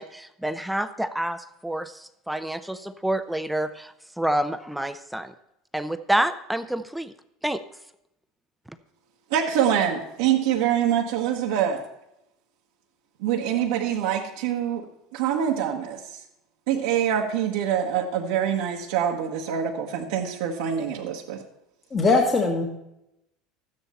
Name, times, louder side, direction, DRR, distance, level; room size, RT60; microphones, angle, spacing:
voice 1, 0.0-5.3 5.7-7.1 7.4-7.6, right 1 dB, 5° right, 11 dB, 0.6 m, -28 dB
voice 2, 9.3-11.8 13.2-14.8 15.1-16.0 16.7-21.4, right 9 dB, 80° right, -2 dB, 1.2 m, -25 dB
voice 3, 21.9-22.6, left 3 dB, 30° left, 1 dB, 1.6 m, -20 dB
12.5 x 9.7 x 4.3 m, 0.84 s
supercardioid pair, 95°, 0 cm